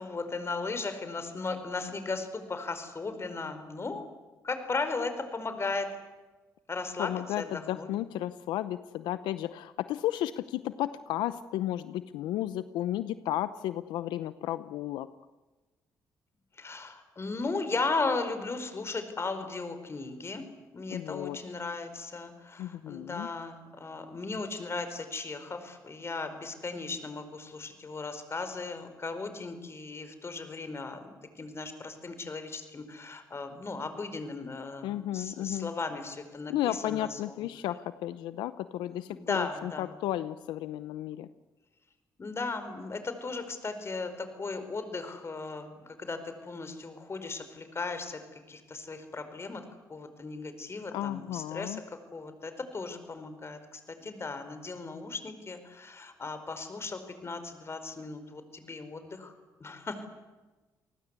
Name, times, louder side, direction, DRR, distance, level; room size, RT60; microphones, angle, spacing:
voice 1, 0.0-4.0 4.4-5.9 6.7-7.1 7.4-7.5 7.7-7.9 16.6-20.4 20.7-37.1 39.1-39.9 42.2-45.7 46.0-48.2 48.5-49.6 49.9-51.8 52.1-59.3 59.6-60.1, left 3 dB, 35° left, 9 dB, 4.8 m, -36 dB
voice 2, 7.0-15.1 20.9-21.4 22.6-23.3 34.8-35.7 36.5-41.3 50.9-51.8, left 13 dB, 90° left, 14 dB, 0.8 m, -33 dB
29.0 x 19.5 x 8.3 m, 1.2 s
cardioid pair, 75°, 8 cm